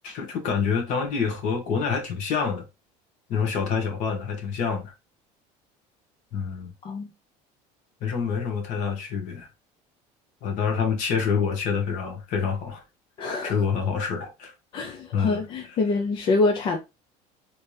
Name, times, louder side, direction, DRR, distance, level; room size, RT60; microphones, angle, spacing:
voice 1, 0.0-2.7 3.3-4.9 6.3-6.7 8.0-9.5 10.4-12.8 13.4-14.5 15.1-15.4, left 6 dB, 55° left, 1.2 m, -27 dB
voice 2, 13.2-13.5 14.7-16.8, left 3 dB, 35° left, 0.4 m, -25 dB
3.3 x 2.7 x 3.2 m
cardioid pair, 170°, 15 cm